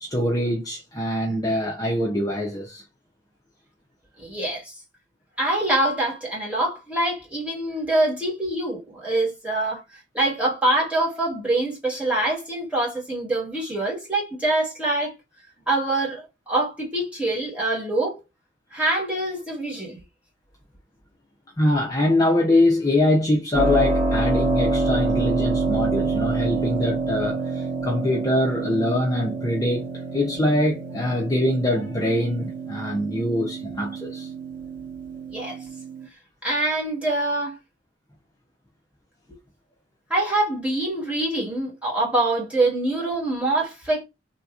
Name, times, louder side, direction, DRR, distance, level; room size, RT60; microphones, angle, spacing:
voice 1, 0.0-2.8 21.6-29.9 30.1-34.3, left 1 dB, 20° left, 0.6 m, -23 dB
voice 2, 4.2-4.7 5.4-9.8 10.1-15.1 15.7-18.2 18.7-20.0 35.3-35.6 36.4-37.6 40.1-44.0, right 2 dB, 5° right, 1.5 m, -24 dB
Keyboard (musical), 23.5-36.1, right 3 dB, 40° right, 1.2 m, -27 dB
3.5 x 2.8 x 2.3 m
head